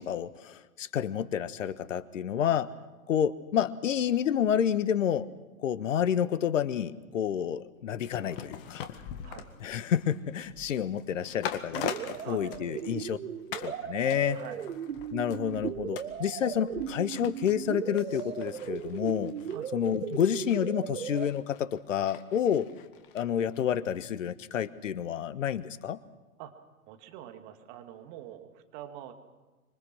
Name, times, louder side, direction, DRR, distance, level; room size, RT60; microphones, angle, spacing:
voice 1, 0.0-2.7 3.1-5.3 5.6-8.8 9.6-11.9 12.2-13.2 13.6-14.4 15.1-19.3 19.7-22.7 23.1-26.0, left 9 dB, 55° left, 14 dB, 1.4 m, -29 dB
sound 1, 8.0-13.2 13.5-13.8 14.1-23.2 23.5-23.6, left 9 dB, 35° left, 1.9 m, -43 dB
sound 2, 11.7-21.3, right 9 dB, 60° right, 1.2 m, -37 dB
voice 2, 12.1-13.1 14.3-14.7 19.5-19.7 26.4-29.1, right 11 dB, 30° right, 6 dB, 2.3 m, -45 dB
26.0 x 24.0 x 6.3 m, 1.2 s
figure-of-eight pair, 120°, 45 cm